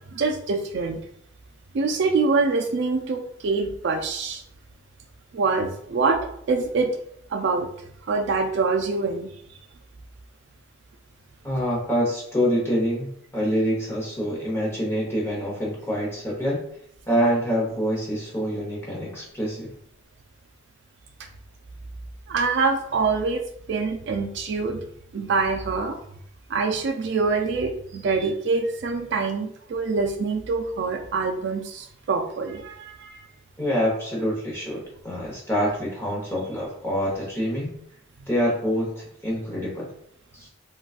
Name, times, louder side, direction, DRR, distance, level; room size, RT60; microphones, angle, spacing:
voice 1, 0.1-1.0 1.7-4.4 5.3-6.2 6.5-6.9 7.3-7.7 8.0-9.3 22.3-23.4 23.7-24.8 25.1-26.0 26.5-33.2, right 4 dB, 60° right, 4 dB, 0.3 m, -25 dB
voice 2, 11.4-16.6 17.1-19.7 33.6-37.7 38.3-39.9 40.3-40.5, equal, 10° left, -4 dB, 0.9 m, -26 dB
3.7 x 2.3 x 2.4 m, 0.68 s
head